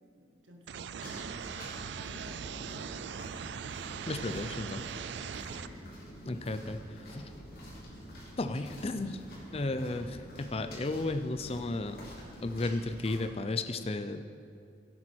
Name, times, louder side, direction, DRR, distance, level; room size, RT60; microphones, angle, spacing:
voice 1, 0.1-3.1 5.3-5.8, equal, 90° right, 1 dB, 1.7 m, -52 dB
sound 1, 0.7-5.7, right 7 dB, 65° right, 0.3 m, -40 dB
sound 2, 1.0-13.2, equal, 55° left, 2.8 m, -47 dB
voice 2, 4.1-4.8 6.3-6.8 7.1-7.2 8.4-9.2 9.5-12.0 12.4-14.2, left 2 dB, 30° left, 9 dB, 0.5 m, -33 dB
16.0 x 8.5 x 4.4 m, 2.5 s
head